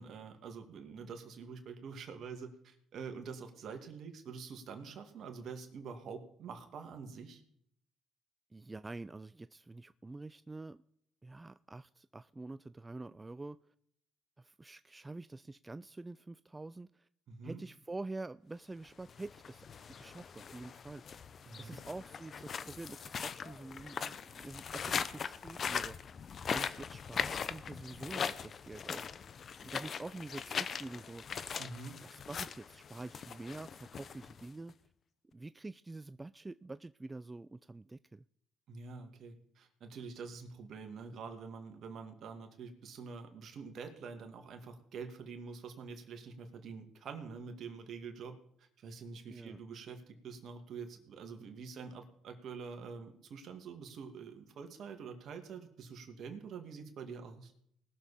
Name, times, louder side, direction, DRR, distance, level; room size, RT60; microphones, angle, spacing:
voice 1, 0.0-7.4 17.3-17.6 21.4-21.8 31.6-32.0 38.7-57.5, right 5 dB, 60° right, 2.3 m, -46 dB
voice 2, 8.5-10.8 11.2-13.6 14.4-17.1 17.4-19.7 19.9-21.2 21.6-29.1 29.6-31.2 32.0-34.7 35.3-38.2 49.3-49.6, right 2 dB, 20° right, 0.4 m, -47 dB
sound 1, 19.0-34.7, left 6 dB, 50° left, 0.7 m, -40 dB
20.0 x 7.1 x 4.3 m
supercardioid pair, 75°, 0 cm